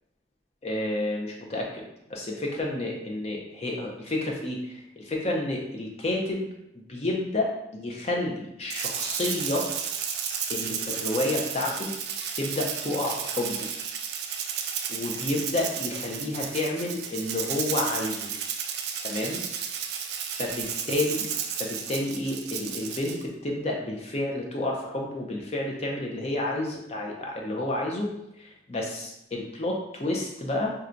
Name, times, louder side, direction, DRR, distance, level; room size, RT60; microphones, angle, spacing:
voice 1, 0.6-1.8 2.1-6.5 6.9-9.7 10.5-11.9 12.3-13.7 14.9-18.3 19.0-19.4 20.4-21.3 21.6-28.1 28.4-30.7, left 1 dB, 35° left, -1 dB, 0.6 m, -30 dB
Rattle (instrument), 8.7-23.2, right 7 dB, 60° right, 0.3 m, -33 dB
4.3 x 2.3 x 2.5 m, 0.84 s
head